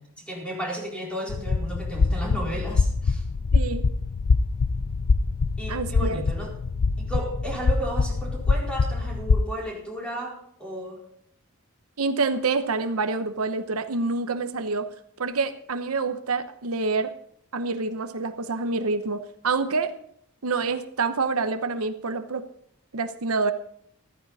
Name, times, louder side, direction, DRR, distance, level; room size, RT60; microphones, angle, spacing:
voice 1, 0.0-3.2 5.6-6.5 7.0-11.0, right 1 dB, 5° left, -2 dB, 4.3 m, -34 dB
sound 1, 1.3-9.4, left 4 dB, 90° left, 0.6 m, -24 dB
voice 2, 3.5-3.8 5.7-6.2 12.0-14.9 15.2-17.1 17.5-19.9 20.4-22.5 22.9-23.5, right 4 dB, 85° right, 9 dB, 1.0 m, -27 dB
14.0 x 14.0 x 4.1 m, 0.69 s
head